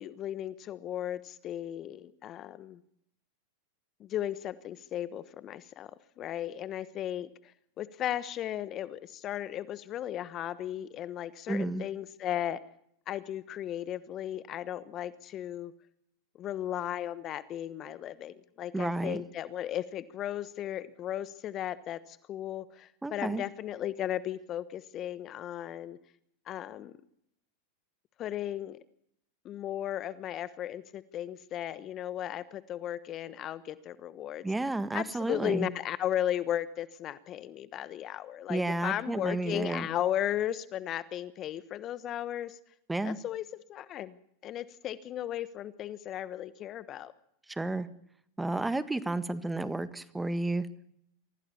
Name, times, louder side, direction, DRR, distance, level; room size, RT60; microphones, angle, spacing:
voice 1, 0.0-2.8 4.0-5.9 6.2-7.5 7.8-12.6 13.1-15.7 16.4-26.0 26.5-26.9 28.2-28.8 29.4-34.4 34.9-42.6 43.0-43.4 43.7-44.2 44.4-47.1, left 11 dB, 40° left, 16 dB, 1.2 m, -35 dB
voice 2, 11.5-11.8 18.7-19.2 23.0-23.4 34.4-35.7 38.5-39.9 42.9-43.2 47.5-47.9 48.4-50.7, right 2 dB, 10° right, 14 dB, 1.6 m, -31 dB
25.0 x 17.0 x 7.1 m, 0.73 s
hypercardioid pair, 105°, 0 cm